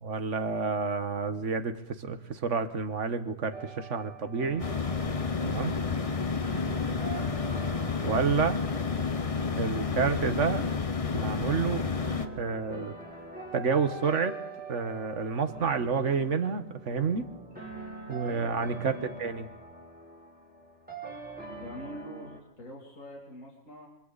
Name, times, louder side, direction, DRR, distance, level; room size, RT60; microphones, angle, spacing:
voice 1, 0.0-4.7 5.4-5.7 8.0-8.6 9.5-10.6 11.1-11.9 12.4-13.0 13.5-14.4 14.7-17.3 18.1-19.5, right 5 dB, 55° right, 9 dB, 1.7 m, -29 dB
sound 1, 3.5-22.4, right 3 dB, 5° right, 4.1 m, -44 dB
sound 2, 4.6-12.3, left 4 dB, 25° left, 0.9 m, -30 dB
voice 2, 6.1-6.6 10.4-10.8 18.8-19.1 21.5-23.9, left 1 dB, 65° left, -2 dB, 3.5 m, -44 dB
25.5 x 25.5 x 4.2 m, 0.84 s
omnidirectional pair, 1.5 m